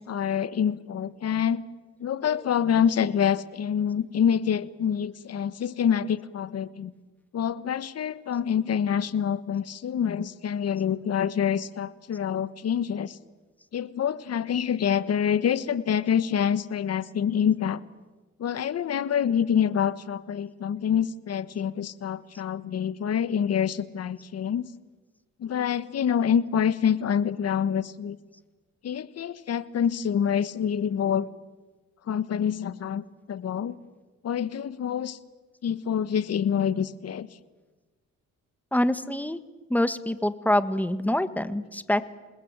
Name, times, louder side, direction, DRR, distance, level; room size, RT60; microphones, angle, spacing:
voice 1, 0.0-1.6 2.0-6.9 7.3-13.2 13.7-17.8 18.4-24.7 25.4-28.2 28.8-31.3 32.1-33.8 34.2-35.2 35.6-37.3, left 8 dB, 55° left, 15 dB, 1.3 m, -26 dB
voice 2, 38.7-39.4 39.7-42.0, left 1 dB, 5° left, 12 dB, 1.5 m, -25 dB
27.5 x 20.0 x 8.9 m, 1.2 s
cardioid pair, 90°, 30 cm